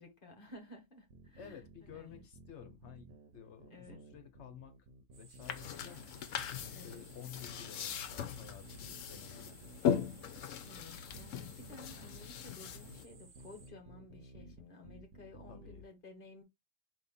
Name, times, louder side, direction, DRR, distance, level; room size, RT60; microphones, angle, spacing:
voice 1, 0.0-2.2 3.7-4.1 6.6-7.0 10.6-16.4, left 2 dB, 45° left, 1.3 m, -55 dB
sound 1, 1.1-15.8, right 1 dB, 65° right, 1.2 m, -56 dB
voice 2, 1.4-4.8 5.1-6.1 6.6-9.7 15.5-15.8, left 8 dB, 65° left, 1.2 m, -53 dB
sound 2, 5.1-13.7, right 5 dB, 45° right, 1.0 m, -61 dB
sound 3, 5.4-13.0, left 8 dB, 80° left, 1.0 m, -39 dB
4.2 x 2.9 x 4.0 m
omnidirectional pair, 1.3 m